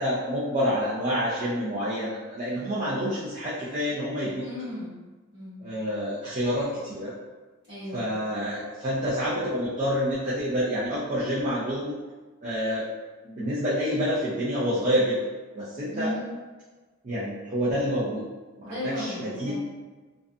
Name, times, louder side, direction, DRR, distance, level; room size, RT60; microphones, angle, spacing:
voice 1, 0.0-4.4 5.6-7.1 7.9-12.0 12.4-12.9 13.2-15.2 15.6-16.1 17.0-18.2 18.6-19.5, equal, 35° right, -9 dB, 0.4 m, -28 dB
voice 2, 4.4-5.0 5.3-5.6 7.6-8.1 15.9-16.3 18.6-19.5, left 1 dB, 50° right, -11 dB, 1.5 m, -35 dB
2.5 x 2.4 x 2.2 m, 1.3 s
head